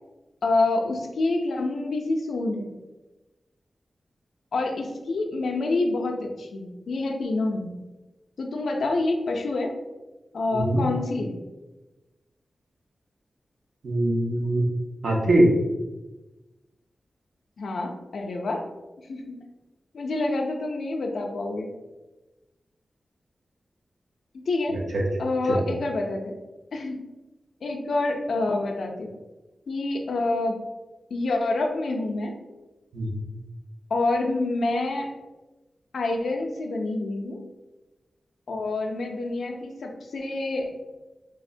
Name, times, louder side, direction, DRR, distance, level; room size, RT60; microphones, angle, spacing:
voice 1, 0.4-2.7 4.5-7.7 8.4-9.7 10.3-11.3 17.6-18.6 19.1-19.4 19.9-21.7 24.5-24.8 25.2-26.4 26.7-27.1 27.6-29.1 29.7-30.6 31.1-32.3 33.9-35.1 35.9-37.4 38.5-40.7, left 2 dB, 85° left, 3 dB, 0.4 m, -27 dB
voice 2, 13.8-14.6 15.0-15.5 24.7-25.0 25.5-25.7 32.9-33.1, right 1 dB, 80° right, -2 dB, 0.6 m, -22 dB
3.3 x 2.1 x 2.5 m, 1.1 s
cardioid pair, 60°, 0 cm